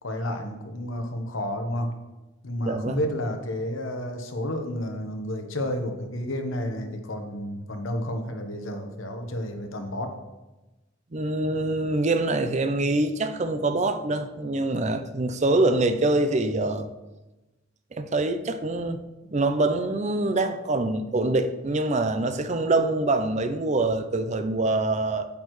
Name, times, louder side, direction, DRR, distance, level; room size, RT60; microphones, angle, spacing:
voice 1, 0.0-1.9 2.4-10.1, left 1 dB, 85° left, 1.1 m, -31 dB
voice 2, 2.7-3.0 11.1-16.9 17.9-19.0 19.3-25.3, right 2 dB, 35° right, 0.5 m, -25 dB
8.5 x 8.3 x 3.1 m
head